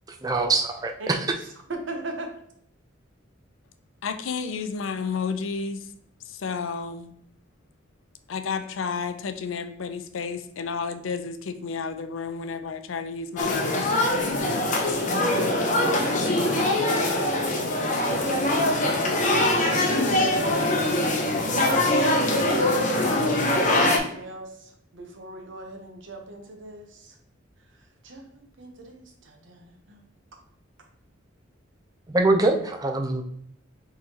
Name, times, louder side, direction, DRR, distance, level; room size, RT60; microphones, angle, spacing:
voice 1, 0.2-1.2 32.1-33.2, right 2 dB, 20° right, 4 dB, 0.4 m, -23 dB
voice 2, 1.0-2.3 14.6-17.0 17.6-20.1 21.1-22.2 23.5-27.2 27.7-30.0, right 2 dB, 70° right, 3 dB, 0.9 m, -41 dB
voice 3, 4.0-5.9 6.3-7.1 8.3-14.8, left 5 dB, 85° left, 9 dB, 0.5 m, -32 dB
sound 1, 13.4-24.0, left 1 dB, 40° left, 0.7 m, -23 dB
4.7 x 3.9 x 2.8 m, 0.69 s
head